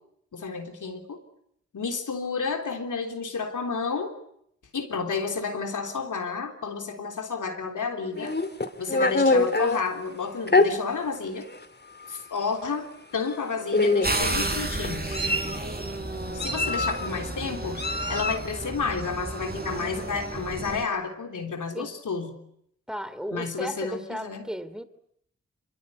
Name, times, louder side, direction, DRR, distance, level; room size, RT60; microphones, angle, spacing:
voice 1, 0.3-1.2 1.7-4.1 4.7-8.4 8.8-11.5 12.1-15.2 16.3-17.8 18.1-22.4 23.3-24.5, left 5 dB, 85° left, 4 dB, 3.5 m, -31 dB
Meow, 8.1-9.8 10.5-10.7 11.5-11.6 12.0-12.2 13.2-13.4 13.7-14.2 14.8-15.6 16.4-17.1 17.8-18.5, left 2 dB, 35° left, 2.7 m, -24 dB
sound 1, 14.0-20.8, right 2 dB, 30° right, 6.3 m, -32 dB
voice 2, 22.9-24.8, equal, ahead, 13 dB, 2.9 m, -35 dB
25.5 x 23.0 x 9.6 m, 0.73 s
cardioid pair, 40°, 30 cm